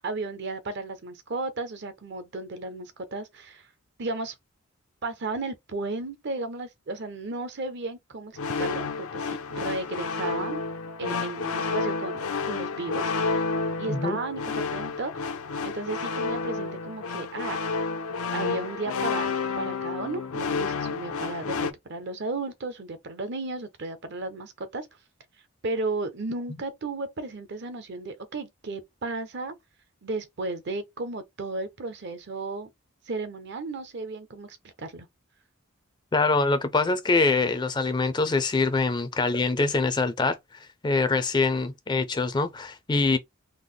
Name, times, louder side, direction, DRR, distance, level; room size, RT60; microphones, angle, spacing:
voice 1, 0.0-3.7 4.0-4.3 5.0-10.6 11.0-13.5 13.8-15.3 15.6-17.6 18.3-24.9 25.6-29.5 30.0-32.7 33.0-35.1, right 3 dB, 50° right, 0.7 m, -34 dB
sound 1, 8.4-21.7, left 4 dB, 85° left, 0.6 m, -30 dB
voice 2, 13.9-14.2 36.1-43.2, left 3 dB, 20° left, 0.4 m, -24 dB
3.8 x 2.1 x 3.2 m
head